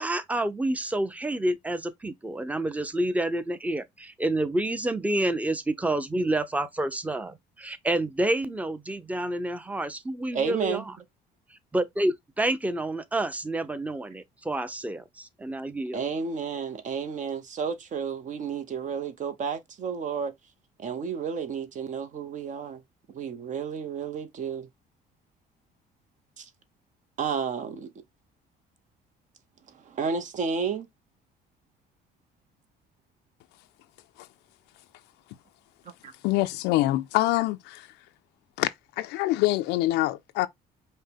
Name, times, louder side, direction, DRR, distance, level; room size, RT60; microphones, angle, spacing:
voice 1, 0.0-11.0 11.7-16.0, right 1 dB, 10° right, 0.6 m, -29 dB
voice 2, 10.3-10.8 15.9-20.3 20.8-22.8 23.1-24.7 26.4-26.5 27.2-27.9 29.9-30.9 36.0-36.1, right 6 dB, 45° right, 0.7 m, -31 dB
voice 3, 36.2-37.9 38.6-40.5, left 17 dB, 90° left, 0.4 m, -25 dB
5.4 x 2.1 x 3.5 m
cardioid pair, 110°, 17 cm